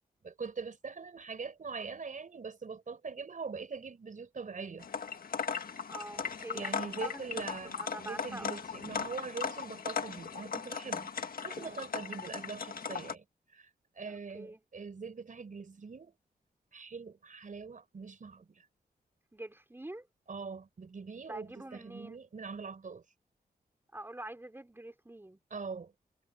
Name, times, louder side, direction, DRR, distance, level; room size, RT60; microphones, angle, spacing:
voice 1, 0.2-4.9 6.5-11.1 11.4-13.2 13.5-13.7 13.9-16.1 16.7-18.6 20.3-23.0 25.5-25.9, right 5 dB, 55° right, 5.1 m, -42 dB
sound 1, 4.8-13.1, left 6 dB, 65° left, 1.6 m, -38 dB
voice 2, 5.9-8.6 11.5-11.9 12.2-12.4 14.0-14.6 19.3-20.1 21.3-22.2 23.9-25.4, right 1 dB, 15° right, 4.9 m, -46 dB
wide cardioid pair, 95°, 16 cm